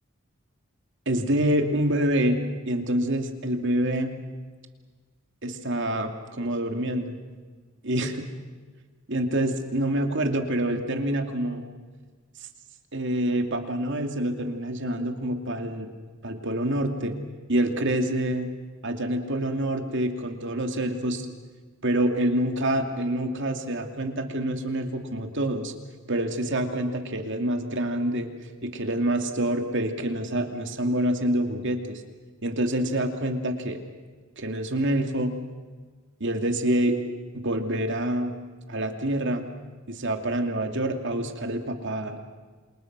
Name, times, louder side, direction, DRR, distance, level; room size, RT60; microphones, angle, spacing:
voice 1, 1.1-2.4 2.7-4.1 5.4-7.1 7.8-8.3 9.1-11.6 12.9-15.9 16.2-17.1 17.5-18.5 18.8-21.3 21.8-25.7 26.1-28.3 28.6-32.0 32.4-33.8 34.4-35.4 36.2-37.0 37.3-38.3 38.7-39.4 39.9-42.2, right 1 dB, 60° right, 5 dB, 2.6 m, -26 dB
29.0 x 27.0 x 6.1 m, 1.5 s
head